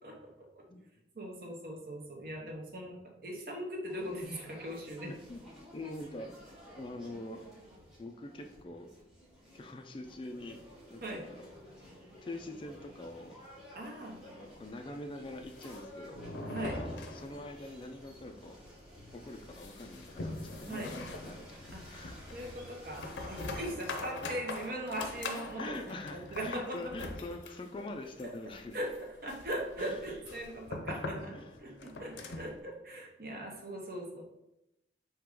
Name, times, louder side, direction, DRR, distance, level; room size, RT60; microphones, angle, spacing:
voice 1, 0.0-0.6 1.1-5.1 11.0-11.2 13.7-14.2 16.5-16.8 20.7-20.9 21.7-21.8 22.3-25.8 26.1-27.1 28.2-28.3 28.7-28.9 29.2-34.2, right 1 dB, 55° right, 0 dB, 1.0 m, -40 dB
sound 1, 3.9-23.7, equal, 5° right, 1.2 m, -53 dB
voice 2, 5.3-6.3 6.7-7.5 8.0-8.9 9.5-10.6 10.9-11.5 12.2-13.4 14.2-16.2 16.7-18.6 19.1-22.2 24.2-24.6 25.6-28.8 29.8-30.0 31.3-31.6, left 2 dB, 30° left, 5 dB, 0.3 m, -44 dB
sound 2, 15.4-17.7 18.0-18.1 18.4-18.5 19.0-32.6, left 2 dB, 90° left, 0.6 m, -43 dB
4.6 x 2.9 x 3.7 m, 0.89 s
head